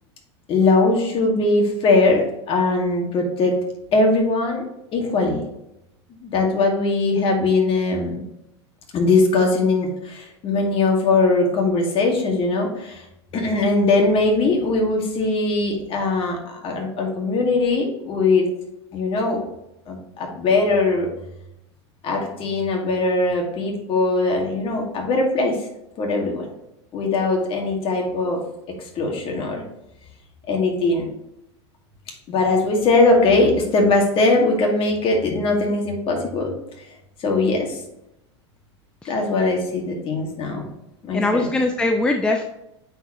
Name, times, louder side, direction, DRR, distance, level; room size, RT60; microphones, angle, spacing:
voice 1, 0.5-3.6 3.9-4.7 4.9-5.4 6.2-8.2 8.9-13.0 13.3-18.4 18.9-19.4 19.9-21.1 22.0-25.6 26.0-26.5 26.9-28.4 29.0-29.6 30.5-31.1 32.3-36.6 37.2-37.8 39.0-40.7 41.0-41.5, left 3 dB, 40° left, 1 dB, 2.1 m, -20 dB
voice 2, 41.1-42.5, left 2 dB, 5° left, 3 dB, 0.5 m, -21 dB
9.0 x 4.4 x 3.1 m, 0.87 s
hypercardioid pair, 105°, 15 cm